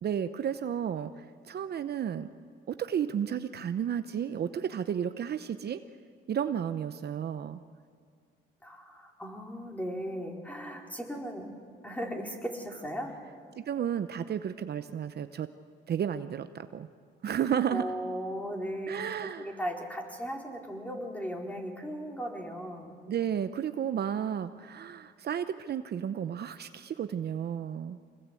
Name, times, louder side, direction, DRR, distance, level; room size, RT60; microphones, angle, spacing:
voice 1, 0.0-2.3 2.7-5.8 6.3-7.6 13.6-15.5 15.9-16.9 17.2-17.9 18.9-19.5 23.1-28.0, right 8 dB, 55° right, 11 dB, 0.8 m, -32 dB
voice 2, 8.6-11.5 11.8-13.1 17.7-19.0 19.4-23.0, equal, 5° left, 0 dB, 4.5 m, -37 dB
25.5 x 20.5 x 8.4 m, 2.1 s
cardioid pair, 90°, 20 cm